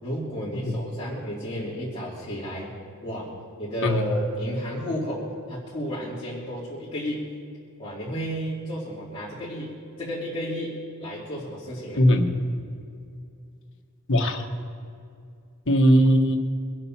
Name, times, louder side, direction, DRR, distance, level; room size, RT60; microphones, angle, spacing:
voice 1, 0.0-2.7 3.0-3.3 3.6-7.3 7.8-12.0, equal, 25° left, -9 dB, 2.8 m, -32 dB
voice 2, 12.0-12.3 14.1-14.4 15.7-16.4, equal, 60° left, 3 dB, 1.4 m, -19 dB
22.5 x 7.9 x 5.9 m, 2.4 s
head